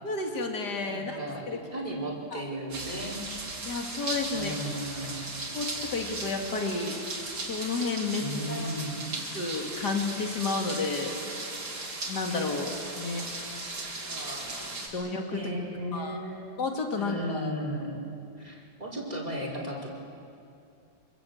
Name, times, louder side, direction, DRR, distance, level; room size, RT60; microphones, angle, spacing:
voice 1, 0.0-1.2 1.5-1.6 2.3-2.4 3.7-4.5 5.5-7.0 7.5-8.8 9.3-11.5 12.1-13.3 14.9-15.6 15.9-16.2 16.6-17.5, left 3 dB, 70° left, 2 dB, 2.9 m, -31 dB
voice 2, 0.9-3.2 4.3-5.2 8.2-9.0 13.6-13.7 14.1-14.4 14.8-15.0 15.3-16.6 16.9-18.0 18.4-19.9, equal, 20° right, -2 dB, 4.4 m, -35 dB
sound 1, 2.7-14.9, right 2 dB, 70° right, 3.6 m, -37 dB
26.0 x 24.5 x 7.9 m, 2.6 s
omnidirectional pair, 1.8 m